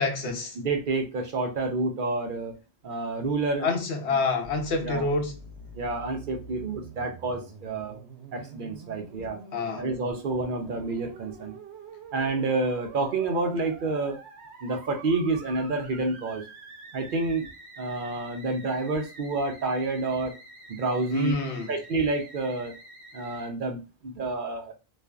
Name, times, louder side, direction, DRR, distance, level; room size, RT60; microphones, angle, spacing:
voice 1, 0.0-0.6 3.6-5.4 9.5-9.9 21.1-21.7, left 3 dB, 80° left, 1.0 m, -27 dB
voice 2, 0.6-2.6 2.8-3.7 4.1-4.2 4.8-5.1 5.8-8.0 8.3-9.4 9.8-11.6 12.1-14.2 14.6-16.4 16.9-17.5 17.8-20.3 20.7-21.3 21.7-22.8 23.1-24.7, right 3 dB, 60° right, 0.6 m, -29 dB
Musical instrument, 4.4-23.5, right 3 dB, 85° right, 0.9 m, -47 dB
2.4 x 2.4 x 2.2 m
omnidirectional pair, 1.1 m